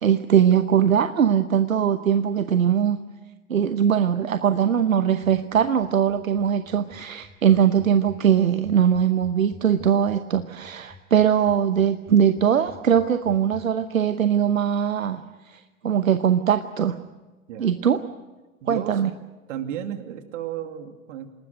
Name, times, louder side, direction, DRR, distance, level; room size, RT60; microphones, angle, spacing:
voice 1, 0.0-3.0 3.5-15.2 15.5-17.0 17.6-18.0 18.7-19.1, right 8 dB, 90° right, 10 dB, 1.0 m, -21 dB
sound 1, 5.2-13.6, left 4 dB, 20° left, 7.6 m, -47 dB
voice 2, 18.6-19.0 19.5-21.3, right 10 dB, 65° right, 6 dB, 2.7 m, -33 dB
28.5 x 19.5 x 6.5 m, 1.2 s
hypercardioid pair, 90°, 39 cm